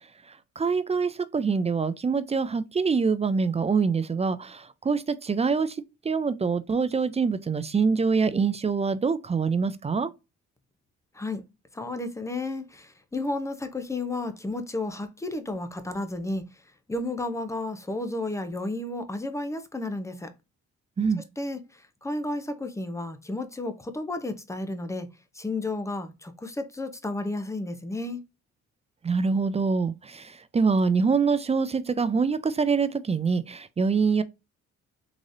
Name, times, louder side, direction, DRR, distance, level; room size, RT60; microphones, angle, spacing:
voice 1, 0.3-5.8 6.0-10.1 21.0-21.2 29.0-34.2, right 5 dB, 20° right, 0.4 m, -25 dB
voice 2, 11.7-16.4 16.9-20.3 21.4-25.1 25.3-28.2, left 2 dB, 10° left, 0.7 m, -32 dB
3.9 x 3.1 x 2.6 m
cardioid pair, 90°, 30 cm